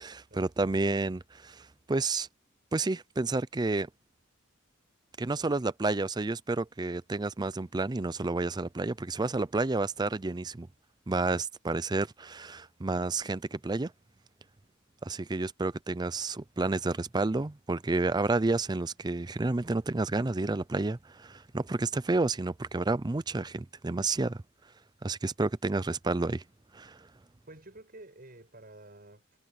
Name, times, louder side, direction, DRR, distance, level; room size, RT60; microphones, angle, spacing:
voice 1, 0.0-2.3 2.7-3.9 5.2-10.7 11.1-13.9 15.0-24.4 25.0-26.4 26.7-27.1, right 3 dB, 20° right, 0.5 m, -30 dB
voice 2, 27.5-29.4, right 2 dB, 45° right, 7.6 m, -50 dB
head